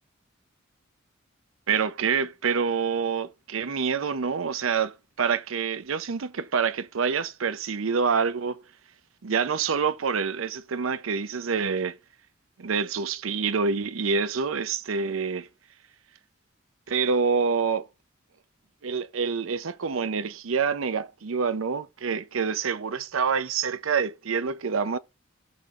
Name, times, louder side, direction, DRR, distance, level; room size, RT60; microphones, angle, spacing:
voice 1, 1.7-8.6 9.2-12.0 12.6-15.5 16.9-17.8 18.8-25.0, right 5 dB, 90° right, 0.6 m, -27 dB
17.0 x 5.8 x 2.5 m
head